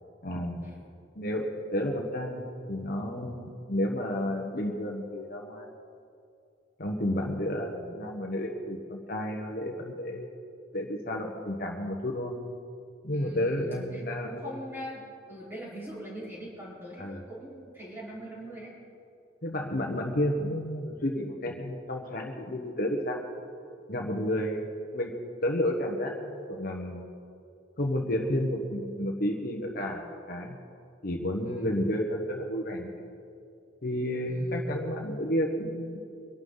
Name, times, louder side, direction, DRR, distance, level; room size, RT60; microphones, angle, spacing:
voice 1, 0.2-0.7 1.2-5.7 6.8-10.3 10.7-12.3 13.0-14.5 17.0-17.2 19.4-23.2 23.9-24.7 24.9-25.2 25.4-27.0 27.8-30.6 31.0-33.0 33.8-36.0, left 1 dB, 50° left, 1 dB, 1.3 m, -31 dB
voice 2, 13.1-18.7 31.4-31.7 34.2-34.6, equal, 10° right, -7 dB, 4.6 m, -42 dB
24.0 x 12.0 x 4.0 m, 2.4 s
head